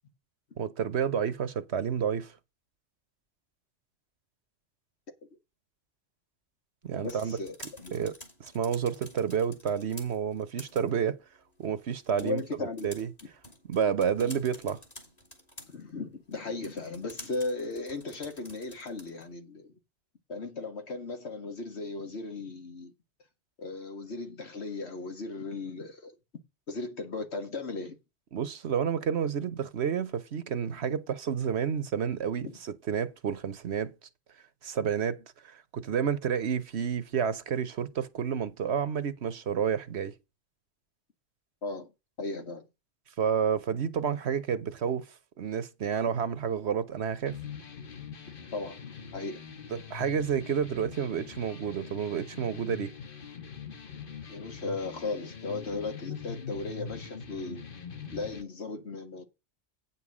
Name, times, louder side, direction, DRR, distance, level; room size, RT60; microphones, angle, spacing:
voice 1, 0.6-2.3 6.8-7.4 7.9-8.1 8.4-11.2 11.6-12.4 12.8-13.1 13.7-14.8 28.3-33.9 34.6-40.1 43.2-45.1 45.4-47.4 49.7-52.9, right 7 dB, 70° right, 1.2 m, -30 dB
sound 1, 6.8-19.3, left 1 dB, 35° left, 3.0 m, -51 dB
voice 2, 7.0-8.0 12.2-12.9 14.2-14.3 15.7-19.7 20.3-22.9 23.6-26.1 26.7-28.0 30.9-31.0 32.4-32.6 41.6-41.9 42.2-42.6 48.5-48.8 49.1-49.5 53.6-53.7 54.3-57.6 58.1-59.3, left 3 dB, 65° left, 2.0 m, -36 dB
sound 2, 47.3-58.4, left 6 dB, 50° left, 1.3 m, -43 dB
9.2 x 5.6 x 6.1 m
omnidirectional pair, 1.2 m